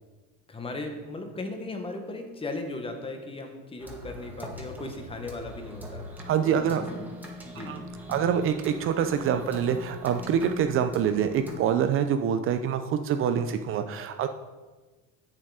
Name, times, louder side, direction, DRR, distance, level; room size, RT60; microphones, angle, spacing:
voice 1, 0.5-6.1 6.4-7.1 7.4-7.8, left 2 dB, 15° left, 5 dB, 1.2 m, -37 dB
sound 1, 3.8-11.6, equal, 5° right, 1.7 m, -41 dB
voice 2, 6.3-6.8 7.7-7.8 8.1-14.3, right 8 dB, 40° right, 8 dB, 0.5 m, -25 dB
7.8 x 7.3 x 4.8 m, 1.3 s
supercardioid pair, 125°, 31 cm